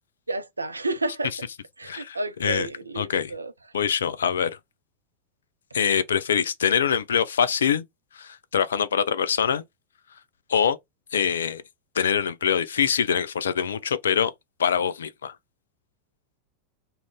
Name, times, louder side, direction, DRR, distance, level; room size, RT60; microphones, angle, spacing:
voice 1, 0.3-1.5 1.8-3.5, right 2 dB, 80° right, 0.4 m, -31 dB
voice 2, 1.8-2.7 3.0-3.3 3.7-4.6 5.7-7.8 8.2-9.6 10.5-10.8 11.1-11.6 12.0-14.3 14.6-15.3, left 7 dB, 65° left, 0.3 m, -24 dB
2.4 x 2.0 x 3.4 m
figure-of-eight pair, 90°, 0 cm